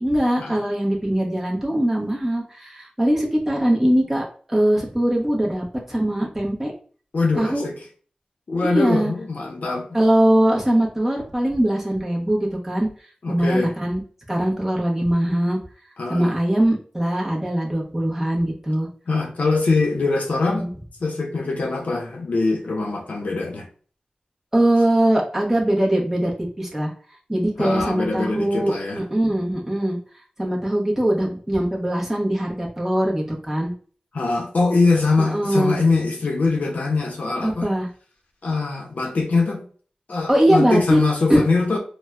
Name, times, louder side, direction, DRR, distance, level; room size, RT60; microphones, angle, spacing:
voice 1, 0.0-6.7 7.4-7.6 8.6-9.1 9.9-12.9 13.3-14.0 14.3-15.6 16.1-18.9 20.5-20.7 24.5-26.3 26.6-26.9 27.3-30.0 30.4-33.7 35.2-35.8 37.4-37.9 40.3-41.0 41.3-41.4, right 1 dB, 15° right, 0.9 m, -21 dB
voice 2, 7.1-7.8 8.5-9.9 13.2-13.7 16.0-16.3 19.1-20.7 21.0-23.7 27.6-29.0 34.1-37.7 38.4-39.6 40.1-41.8, left 3 dB, 75° left, 0.7 m, -22 dB
4.3 x 2.2 x 2.3 m
wide cardioid pair, 95°, 3 cm